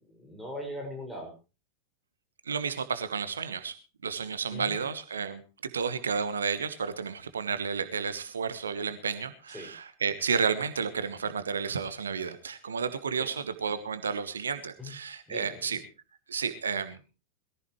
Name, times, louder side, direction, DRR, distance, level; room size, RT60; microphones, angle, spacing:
voice 1, 0.1-1.3 4.5-4.8 9.5-9.7 13.2-13.3 14.8-14.9 15.3-15.6, left 1 dB, 5° left, 1 dB, 6.1 m, -40 dB
voice 2, 2.4-15.8 16.3-17.0, right 6 dB, 70° right, 11 dB, 1.2 m, -32 dB
21.5 x 15.0 x 3.2 m, 0.32 s
figure-of-eight pair, 90°, 0 cm